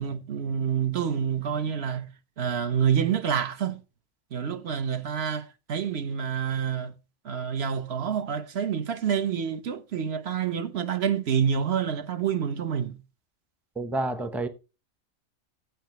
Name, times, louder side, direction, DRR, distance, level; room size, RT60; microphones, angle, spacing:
voice 1, 0.0-2.1 2.4-3.8 4.3-6.9 7.2-12.9, right 8 dB, 55° right, 0.9 m, -27 dB
voice 2, 13.8-14.5, right 2 dB, ahead, 0.6 m, -29 dB
14.5 x 5.7 x 3.0 m
omnidirectional pair, 1.4 m